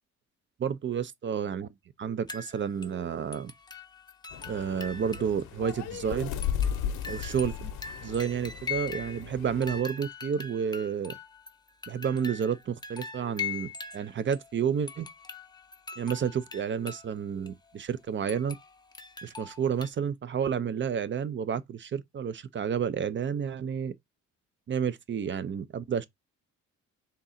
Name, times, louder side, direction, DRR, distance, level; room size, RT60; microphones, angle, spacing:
voice 1, 0.6-1.7 2.0-3.5 4.5-6.3 7.1-7.7 8.0-11.2 11.9-15.1 16.0-18.6 19.2-23.9 24.7-26.0, right 7 dB, 40° right, 0.5 m, -30 dB
sound 1, 2.3-3.0 3.3-5.4 5.7-5.8 6.4-9.3 9.6-14.5 14.9-17.1 17.5-17.6 18.3-19.9, left 6 dB, 15° left, 0.6 m, -41 dB
sound 2, 4.3-9.8, left 8 dB, 75° left, 0.8 m, -35 dB
3.7 x 2.8 x 4.1 m
cardioid pair, 90°, 30 cm